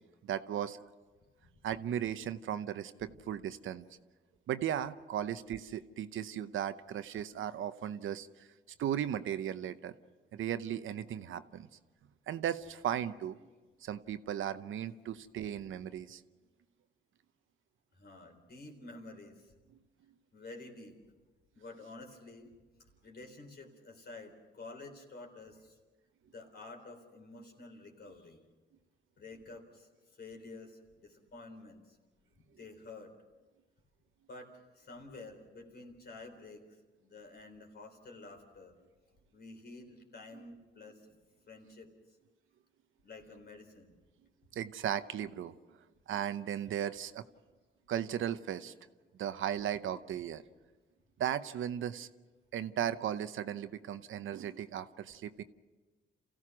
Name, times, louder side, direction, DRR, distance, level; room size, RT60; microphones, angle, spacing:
voice 1, 0.2-0.8 1.6-3.8 4.5-8.5 8.8-9.9 10.3-11.7 12.3-13.4 13.8-16.2 40.3-40.4 44.5-45.5 46.1-47.2 47.9-48.7 49.2-50.4 51.2-52.1 52.5-55.4, right 10 dB, 80° right, 11 dB, 0.8 m, -36 dB
voice 2, 17.9-19.5 20.3-21.0 21.5-22.5 23.0-25.8 26.3-28.4 29.2-32.0 32.6-33.1 34.3-38.8 39.3-41.1 41.5-41.9 43.0-44.0, left 3 dB, 55° left, 4 dB, 3.9 m, -50 dB
28.5 x 15.5 x 6.1 m, 1.3 s
cardioid pair, 90°, 20 cm